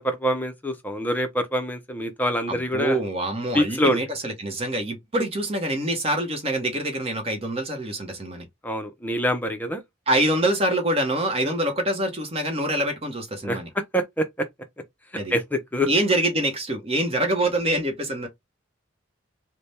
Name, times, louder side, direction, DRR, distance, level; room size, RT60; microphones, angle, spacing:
voice 1, 0.0-3.0 3.5-4.0 8.6-9.8 13.4-14.5 15.3-15.9, equal, 10° left, 0.5 m, -25 dB
voice 2, 2.5-8.5 10.1-13.7 15.1-15.3 15.9-18.3, right 1 dB, 30° right, 0.8 m, -25 dB
3.4 x 2.1 x 4.1 m
head